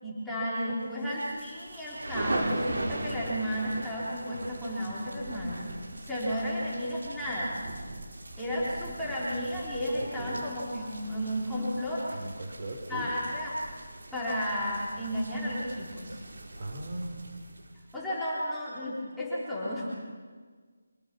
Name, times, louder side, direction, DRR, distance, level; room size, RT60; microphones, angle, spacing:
voice 1, 0.0-5.7 6.0-7.6 8.4-12.1 12.9-13.6 14.1-16.2 17.9-19.9, equal, ahead, -11 dB, 4.0 m, -33 dB
sound 1, 1.0-17.9, right 1 dB, 70° right, 5.3 m, -40 dB
voice 2, 10.2-10.5 12.1-13.1 16.6-17.2, right 1 dB, 40° right, 3 dB, 4.5 m, -38 dB
26.5 x 19.0 x 7.0 m, 1.6 s
figure-of-eight pair, 170°, 0 cm